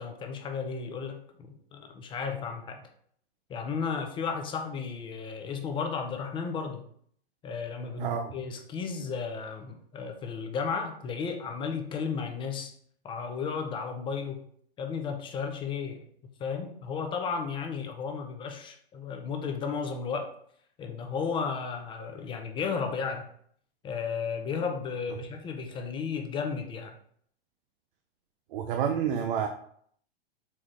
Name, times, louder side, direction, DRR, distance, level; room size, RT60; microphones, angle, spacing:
voice 1, 0.0-2.8 3.5-6.9 7.4-12.7 13.0-14.5 14.8-16.0 16.4-20.3 20.8-23.3 23.8-27.0, left 5 dB, 15° left, 5 dB, 0.4 m, -34 dB
voice 2, 8.0-8.3 28.5-29.5, right 8 dB, 55° right, 4 dB, 0.5 m, -29 dB
4.1 x 3.4 x 3.2 m, 0.63 s
hypercardioid pair, 115°, 32 cm